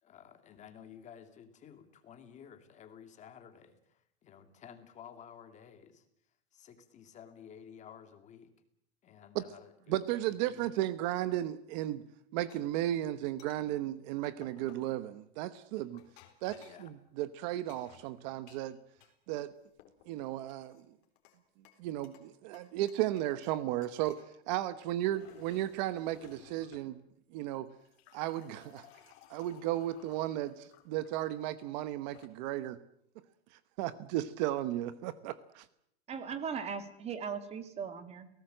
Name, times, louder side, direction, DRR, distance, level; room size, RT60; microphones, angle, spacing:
voice 1, 0.0-6.1 6.5-8.5 9.0-10.0 10.2-10.7 15.9-16.0 16.5-16.9, left 8 dB, 20° left, 8 dB, 2.4 m, -53 dB
voice 2, 9.9-12.0 12.3-16.0 16.4-18.8 19.3-19.5 20.1-20.8 21.8-27.0 27.3-27.7 28.1-28.9 29.3-32.8 33.8-35.7, right 14 dB, 40° right, 14 dB, 1.0 m, -34 dB
sound 1, 12.5-12.6 13.4-13.6 14.4-14.9 15.7-16.9 17.7-19.1 19.5-20.1 20.5-21.4 21.6-22.3 22.5-23.6 23.8-24.3 24.8-26.9 27.7-31.1 31.9-32.3, left 11 dB, 40° left, 4.1 m, -59 dB
voice 3, 36.1-38.3, right 6 dB, 20° right, 10 dB, 1.9 m, -38 dB
29.5 x 18.0 x 7.8 m, 0.74 s
supercardioid pair, 160°, 32 cm